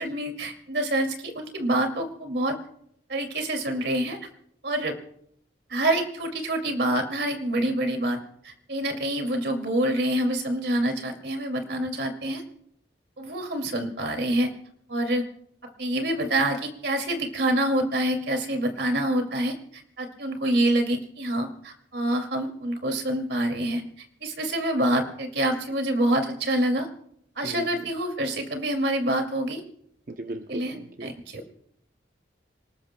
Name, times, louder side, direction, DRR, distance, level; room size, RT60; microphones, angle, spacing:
voice 1, 0.0-2.6 3.1-4.2 4.6-4.9 5.7-12.4 13.2-14.5 14.9-15.2 15.8-23.8 24.2-26.9 27.4-29.6 30.5-30.7 31.0-31.4, right 1 dB, 75° right, 5 dB, 2.4 m, -26 dB
voice 2, 27.4-27.9 30.1-31.1, right 2 dB, 50° right, 6 dB, 0.6 m, -37 dB
26.5 x 19.5 x 2.2 m, 0.71 s
head